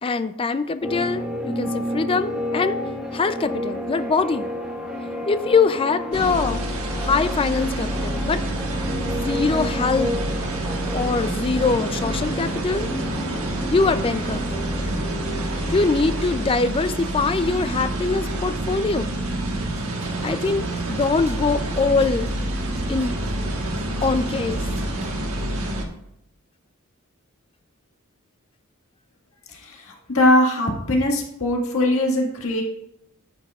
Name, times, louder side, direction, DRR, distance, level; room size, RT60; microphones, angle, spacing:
voice 1, 0.0-2.8 3.1-4.5 5.3-6.6 7.0-8.4 9.1-10.1 10.9-12.9 13.7-14.6 15.7-19.1 20.2-22.3 22.9-23.2 24.0-24.6, left 4 dB, 25° left, 11 dB, 0.3 m, -23 dB
sound 1, 0.8-16.5, equal, 5° right, 1.4 m, -31 dB
sound 2, 6.1-25.8, right 1 dB, 85° right, 1.3 m, -28 dB
sound 3, 19.6-25.1, right 2 dB, 30° right, 0.7 m, -36 dB
voice 2, 29.5-32.6, left 1 dB, 75° left, 0 dB, 1.7 m, -21 dB
10.5 x 7.9 x 2.4 m, 0.77 s
head